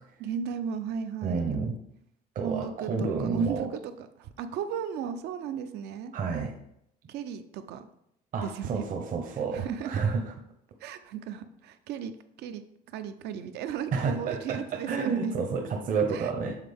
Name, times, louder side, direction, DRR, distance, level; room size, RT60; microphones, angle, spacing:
voice 1, 0.2-1.7 2.4-6.1 7.1-7.9 8.4-8.9 9.3-10.0 10.8-12.6 12.9-15.3 16.1-16.3, right 7 dB, 80° right, 10 dB, 0.5 m, -36 dB
voice 2, 1.2-1.8 2.4-3.7 6.1-6.5 8.3-10.2 13.9-16.6, right 5 dB, 55° right, 3 dB, 0.9 m, -30 dB
7.3 x 3.8 x 3.5 m, 0.76 s
cardioid pair, 110°, 17 cm